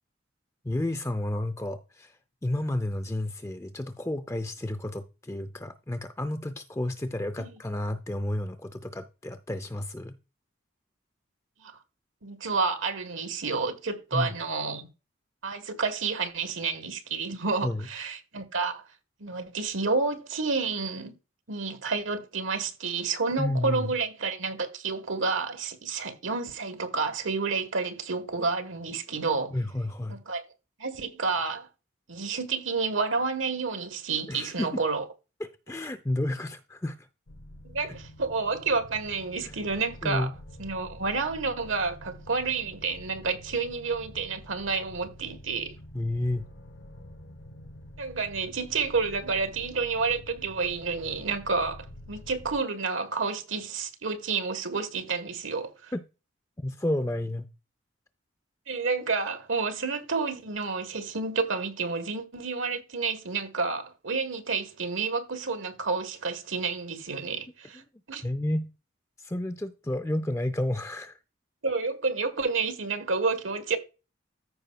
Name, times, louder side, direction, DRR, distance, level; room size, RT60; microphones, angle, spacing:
voice 1, 0.6-10.2 14.1-14.3 17.6-17.9 23.4-23.9 29.5-30.2 34.3-34.8 35.4-37.1 39.4-39.5 40.0-40.3 45.9-46.4 55.9-56.0 56.6-57.5 68.2-68.7 69.2-71.2, left 1 dB, 15° left, 0.5 m, -31 dB
voice 2, 12.2-14.9 15.4-18.8 19.2-21.1 21.5-29.5 30.1-30.4 30.8-31.7 32.1-35.0 37.6-40.3 40.6-45.8 48.0-55.9 58.7-67.8 68.1-68.3 71.6-73.8, right 4 dB, 75° right, 1.4 m, -30 dB
sound 1, 37.3-52.6, left 1 dB, 65° left, 0.9 m, -47 dB
14.0 x 5.4 x 2.3 m
head